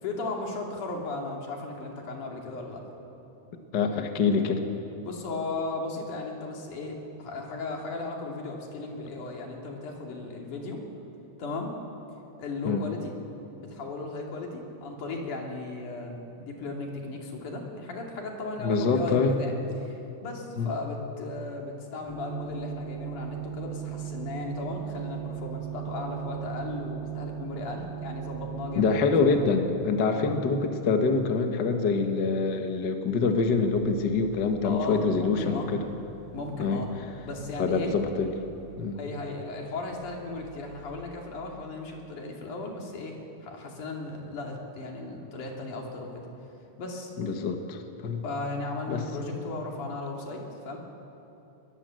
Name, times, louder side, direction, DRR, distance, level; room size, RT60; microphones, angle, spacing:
voice 1, 0.0-2.9 5.0-10.8 11.4-11.7 12.4-13.1 13.6-19.5 19.8-29.1 30.1-30.4 34.6-35.7 36.3-36.9 37.2-37.9 38.9-46.1 46.8-47.1 48.2-50.8, left 3 dB, 75° left, 0 dB, 4.2 m, -36 dB
voice 2, 3.7-4.6 12.6-12.8 18.6-19.4 20.6-20.7 28.7-35.8 36.6-36.8 37.6-38.3 38.8-39.0 47.2-48.2 48.9-49.0, left 4 dB, 45° left, 5 dB, 1.5 m, -25 dB
sound 1, 22.1-29.7 33.0-40.9, right 9 dB, ahead, 7.5 m, -40 dB
21.0 x 21.0 x 7.7 m, 2.9 s
omnidirectional pair, 3.6 m